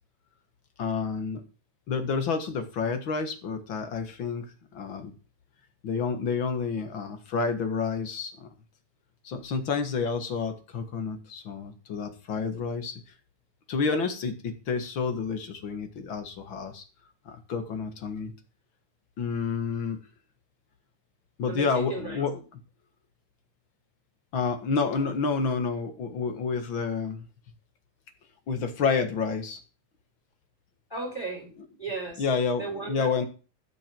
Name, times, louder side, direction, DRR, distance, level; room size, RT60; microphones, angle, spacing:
voice 1, 0.8-1.4 1.9-4.5 4.7-5.1 5.8-8.5 9.2-13.0 13.7-16.8 17.3-18.3 19.2-20.0 21.4-22.4 24.3-27.3 28.5-29.6 32.2-33.2, left 5 dB, 50° left, 7 dB, 1.7 m, -29 dB
voice 2, 21.5-22.2 25.0-25.1 30.9-31.5 31.8-32.3 32.6-33.1, right 3 dB, 5° left, 0 dB, 4.5 m, -35 dB
13.5 x 6.7 x 6.1 m, 0.35 s
omnidirectional pair, 4.0 m